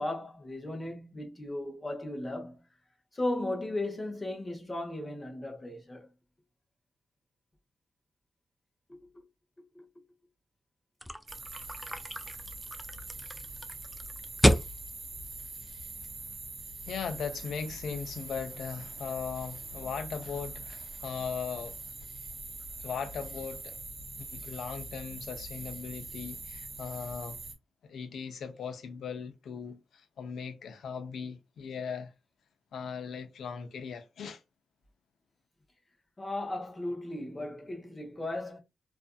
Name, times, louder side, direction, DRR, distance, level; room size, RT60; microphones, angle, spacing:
voice 1, 0.0-2.6 3.1-6.1 8.9-9.2 9.7-9.9 36.2-38.6, left 1 dB, 25° left, 0.9 m, -36 dB
sound 1, 11.0-16.3, equal, ahead, 0.3 m, -31 dB
sound 2, 11.3-27.5, right 2 dB, 55° right, 0.9 m, -43 dB
voice 2, 16.9-21.8 22.8-23.8 24.2-27.4 27.8-32.1 32.7-34.4, left 6 dB, 85° left, 0.5 m, -38 dB
2.5 x 2.5 x 2.2 m
wide cardioid pair, 110°, 0 cm